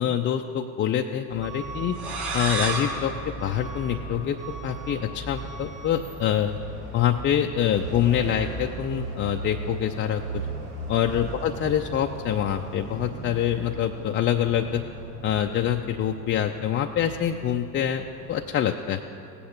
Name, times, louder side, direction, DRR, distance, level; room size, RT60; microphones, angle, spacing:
voice 1, 0.0-2.0 2.3-6.6 6.9-10.4 10.9-14.9 15.2-19.0, left 10 dB, 25° left, 3 dB, 0.4 m, -25 dB
Truck / Alarm, 1.3-18.5, right 2 dB, 85° right, 2.6 m, -37 dB
sound 1, 1.9-4.5, right 3 dB, 55° right, 2.9 m, -32 dB
17.0 x 8.4 x 5.8 m, 2.6 s
hypercardioid pair, 75°, 46 cm